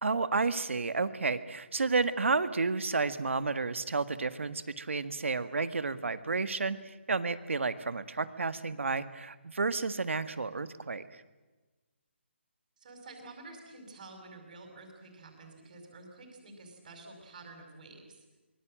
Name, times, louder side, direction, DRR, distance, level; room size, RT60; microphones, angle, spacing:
voice 1, 0.0-11.0, right 4 dB, 75° right, 12 dB, 1.8 m, -31 dB
voice 2, 12.8-18.2, right 2 dB, 40° right, 2 dB, 5.4 m, -50 dB
24.5 x 23.0 x 7.7 m, 1.2 s
hypercardioid pair, 170°, 7 cm